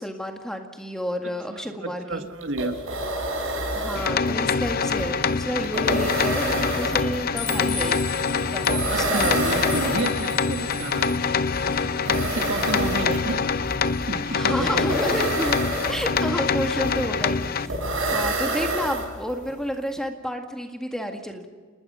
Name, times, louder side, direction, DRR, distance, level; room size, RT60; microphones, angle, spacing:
voice 1, 0.0-2.3 3.7-8.0 8.5-9.3 14.3-15.5 15.9-17.8 18.1-21.5, equal, 5° left, 3 dB, 1.9 m, -30 dB
voice 2, 1.5-2.8 8.9-11.3 12.1-13.4 14.1-15.0, right 2 dB, 65° right, 6 dB, 1.7 m, -30 dB
sound 1, 2.1-2.2 2.4-19.5, right 2 dB, 90° right, 6.6 m, -29 dB
sound 2, 3.9-17.7, left 5 dB, 45° left, 0.7 m, -25 dB
sound 3, 4.4-18.2, left 2 dB, 65° left, 6.1 m, -37 dB
29.5 x 20.0 x 5.7 m, 1.5 s
head